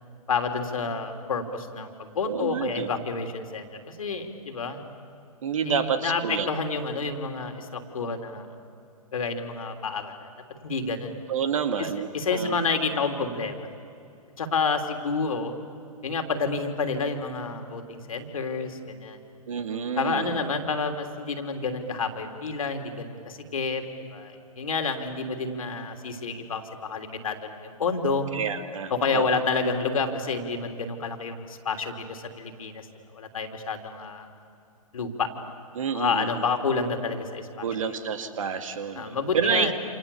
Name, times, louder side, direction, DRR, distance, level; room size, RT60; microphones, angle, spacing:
voice 1, 0.3-4.8 5.6-8.5 9.1-10.3 10.6-11.2 11.8-11.9 12.1-13.7 14.4-15.5 16.0-19.2 20.0-23.8 24.1-28.3 28.9-32.9 33.1-34.3 34.9-35.3 35.9-37.6 39.0-39.7, left 4 dB, 65° left, 5 dB, 3.2 m, -29 dB
voice 2, 2.2-2.9 5.4-6.5 11.3-12.7 19.5-20.4 28.3-29.3 35.7-36.3 37.6-39.7, right 6 dB, 60° right, 8 dB, 2.2 m, -29 dB
28.5 x 28.0 x 7.1 m, 2.6 s
figure-of-eight pair, 115°, 19 cm